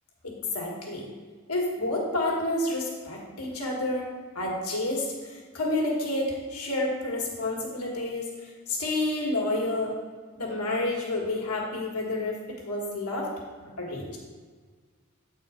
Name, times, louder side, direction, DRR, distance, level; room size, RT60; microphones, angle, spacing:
voice 1, 0.2-1.1 1.5-9.9 10.3-13.3 13.6-14.2, left 2 dB, 80° left, -2 dB, 1.7 m, -30 dB
8.5 x 4.2 x 4.9 m, 1.5 s
head